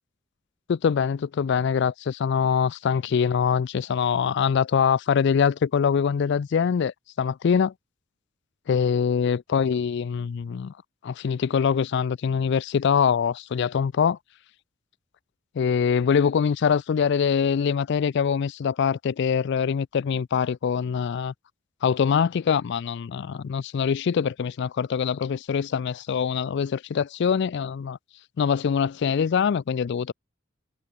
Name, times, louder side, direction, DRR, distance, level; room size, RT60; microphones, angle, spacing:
voice 1, 0.7-7.7 8.7-10.7 11.0-14.2 15.6-21.3 21.8-28.0 28.4-30.1, left 7 dB, 60° left, 0.4 m, -24 dB
head